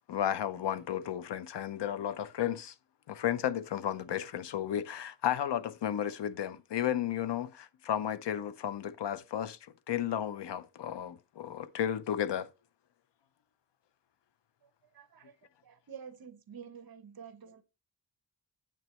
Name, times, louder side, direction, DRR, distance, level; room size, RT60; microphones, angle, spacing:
voice 1, 0.1-2.7 3.1-9.6 9.9-12.5, left 10 dB, 65° left, 0.7 m, -33 dB
voice 2, 14.9-15.3 15.6-17.6, right 7 dB, 50° right, 1.0 m, -48 dB
9.0 x 7.9 x 3.2 m
wide cardioid pair, 155°, 46 cm